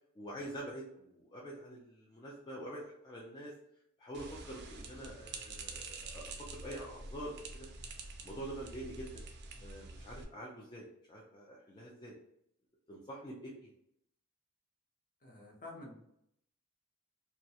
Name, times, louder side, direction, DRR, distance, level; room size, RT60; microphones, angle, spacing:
voice 1, 0.2-3.5 4.0-7.7 8.2-9.2 9.6-12.2 12.9-13.7, right 1 dB, 20° left, -4 dB, 0.3 m, -46 dB
sound 1, 4.1-10.2, right 3 dB, 50° right, 0.4 m, -47 dB
voice 2, 15.2-15.9, left 2 dB, 40° left, -1 dB, 0.7 m, -49 dB
2.3 x 2.1 x 2.7 m, 0.74 s
head